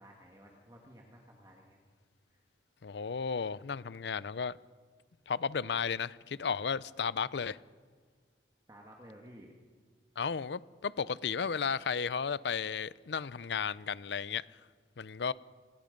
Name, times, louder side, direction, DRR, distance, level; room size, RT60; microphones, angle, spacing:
voice 1, 0.0-1.8 2.3-2.4 8.7-9.5, equal, 20° right, 1.8 m, -54 dB
voice 2, 2.8-4.6 5.3-7.6 10.2-14.4 15.0-15.3, left 6 dB, 75° left, 0.5 m, -34 dB
27.0 x 19.0 x 5.3 m
head